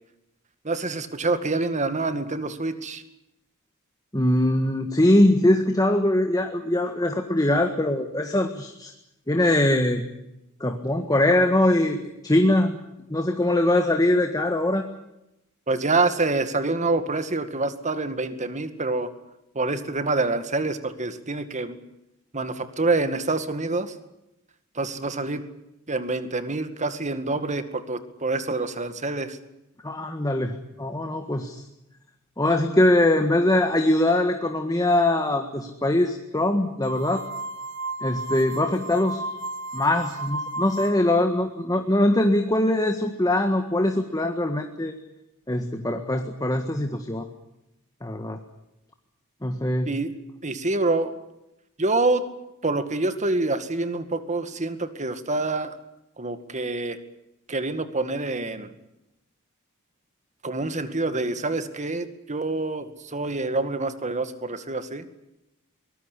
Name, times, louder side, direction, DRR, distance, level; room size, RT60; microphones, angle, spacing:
voice 1, 0.6-3.0 15.7-19.1 19.5-21.8 22.3-23.9 24.7-25.4 25.9-29.4 49.9-50.1 50.4-51.1 51.8-52.2 52.6-55.8 56.2-57.0 57.5-58.7 60.4-65.1, right 3 dB, 35° right, 10 dB, 2.1 m, -26 dB
voice 2, 4.1-8.9 9.3-10.0 10.6-12.8 13.1-14.9 29.8-31.6 32.4-37.2 38.0-39.2 39.7-44.9 45.5-47.3 48.0-48.4 49.4-49.9, left 1 dB, 15° left, 5 dB, 1.7 m, -22 dB
sound 1, 36.9-41.2, right 2 dB, 60° right, 1.8 m, -33 dB
23.5 x 19.5 x 8.5 m, 0.88 s
head